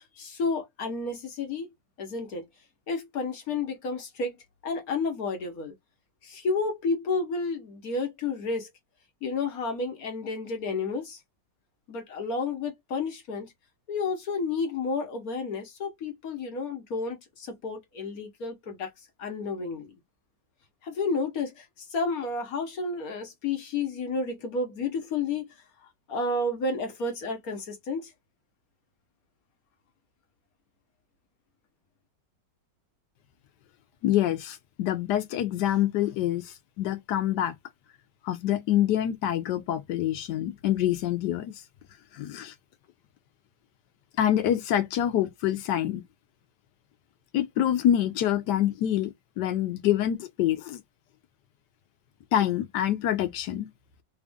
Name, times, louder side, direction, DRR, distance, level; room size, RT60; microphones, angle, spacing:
voice 1, 0.0-1.7 2.0-2.4 2.9-4.4 4.6-5.7 6.2-8.7 9.2-11.2 11.9-13.5 13.9-18.9 19.2-19.9 20.8-25.6 26.1-28.1, left 3 dB, 60° left, 1.4 m, -31 dB
voice 2, 34.0-37.5 38.2-41.5 42.1-42.5 44.2-46.0 47.3-50.8 52.3-53.7, left 11 dB, 75° left, 1.3 m, -26 dB
3.4 x 2.5 x 3.5 m
omnidirectional pair, 1.9 m